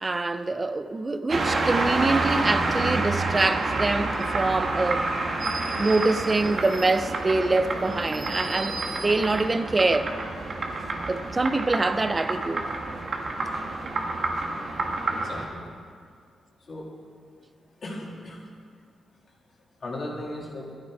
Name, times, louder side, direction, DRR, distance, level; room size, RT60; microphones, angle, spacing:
voice 1, 0.0-5.1 5.8-10.1 11.1-12.7, right 3 dB, 30° right, 0.6 m, -25 dB
sound 1, 1.3-15.5, right 2 dB, 50° right, 1.5 m, -28 dB
voice 2, 15.1-15.6 16.7-16.9 17.8-18.4 19.8-20.7, left 1 dB, 50° left, 2.7 m, -36 dB
12.0 x 9.9 x 4.8 m
cardioid pair, 80°, 0 cm